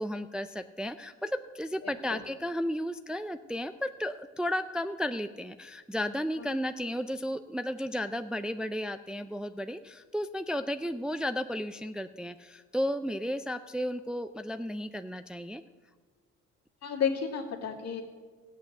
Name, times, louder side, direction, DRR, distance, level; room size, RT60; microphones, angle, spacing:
voice 1, 0.0-15.6, equal, 5° right, 9 dB, 0.4 m, -33 dB
voice 2, 1.8-2.2 6.4-6.5 16.8-18.0, left 7 dB, 60° left, 0 dB, 2.3 m, -32 dB
15.0 x 8.3 x 6.5 m, 1.5 s
cardioid pair, 90°, 30 cm